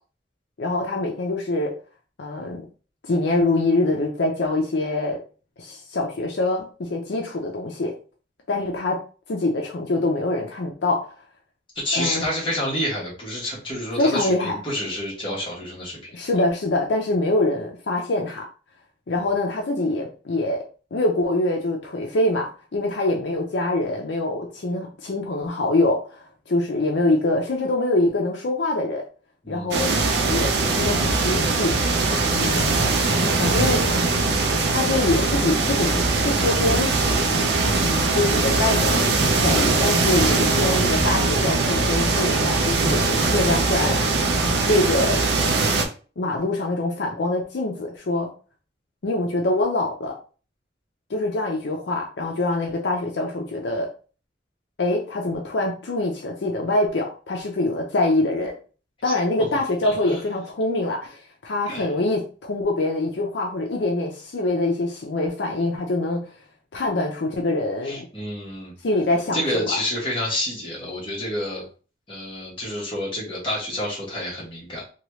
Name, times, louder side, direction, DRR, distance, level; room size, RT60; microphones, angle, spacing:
voice 1, 0.6-1.7 2.2-2.7 3.1-5.2 5.6-7.9 8.5-9.0 9.3-11.1 11.9-12.2 14.0-14.5 16.1-18.4 19.1-20.6 20.9-29.0 29.5-29.9 30.2-31.7 32.3-32.9 33.4-33.9 34.7-37.3 37.8-44.0 44.7-45.2 46.2-48.3 49.0-50.1 51.1-53.9 54.8-58.5 59.0-66.3 66.7-68.1 68.8-69.4 69.7-69.8, left 2 dB, 70° left, 1 dB, 0.5 m, -24 dB
voice 2, 11.7-16.3 29.4-29.8 59.0-59.1 59.8-60.2 61.7-61.9 67.8-68.7 69.3-71.7 72.1-74.8, left 1 dB, 30° left, -5 dB, 1.2 m, -29 dB
sound 1, 29.7-45.9, right 3 dB, 60° right, 0.5 m, -21 dB
2.9 x 2.3 x 3.0 m, 0.38 s
head